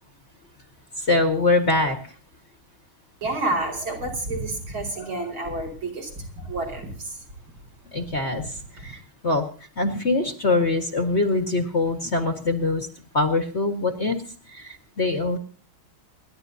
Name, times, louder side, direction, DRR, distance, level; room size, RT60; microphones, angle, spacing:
voice 1, 1.1-2.0 7.9-8.4 8.8-9.5 9.8-12.9 13.1-14.2 14.5-15.4, left 2 dB, 35° left, 5 dB, 1.8 m, -23 dB
voice 2, 3.2-7.2 8.8-8.9, right 2 dB, 75° right, 1 dB, 5.9 m, -29 dB
28.5 x 11.5 x 2.8 m, 0.39 s
omnidirectional pair, 2.3 m